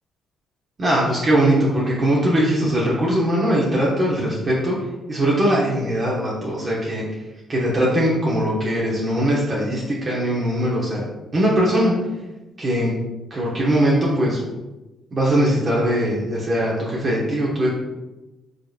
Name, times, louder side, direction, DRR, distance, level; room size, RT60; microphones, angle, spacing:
voice 1, 0.8-4.7 5.1-7.0 7.5-11.0 11.3-11.9 12.6-12.9 13.3-14.4 15.1-17.7, right 1 dB, 40° right, -5 dB, 0.9 m, -20 dB
5.0 x 2.9 x 2.4 m, 1.1 s
cardioid pair, 90°, 0 cm